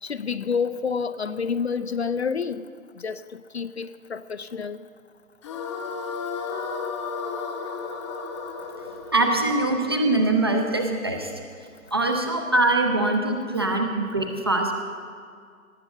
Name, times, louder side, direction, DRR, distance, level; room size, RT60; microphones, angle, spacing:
voice 1, 0.0-2.6 3.0-4.8, left 6 dB, 50° left, 13 dB, 0.5 m, -29 dB
sound 1, 5.4-10.6, left 5 dB, 20° left, 0.8 m, -33 dB
voice 2, 9.1-11.3 11.9-14.7, right 2 dB, 20° right, 3 dB, 0.5 m, -23 dB
18.0 x 7.7 x 6.9 m, 2.1 s
figure-of-eight pair, 135°, 42 cm